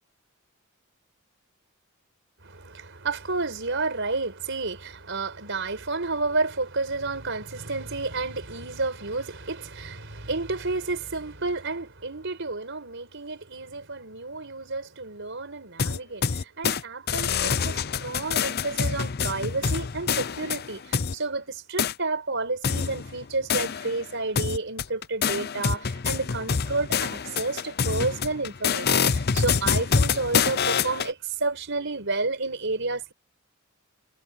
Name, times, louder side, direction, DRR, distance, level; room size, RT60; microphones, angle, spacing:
voice 1, 2.4-33.1, right 3 dB, 65° right, 5.2 m, -31 dB
sound 1, 15.8-16.8 17.1-21.1 21.8-21.9 22.6-24.0 24.4-31.1, left 6 dB, 50° left, 0.7 m, -26 dB
head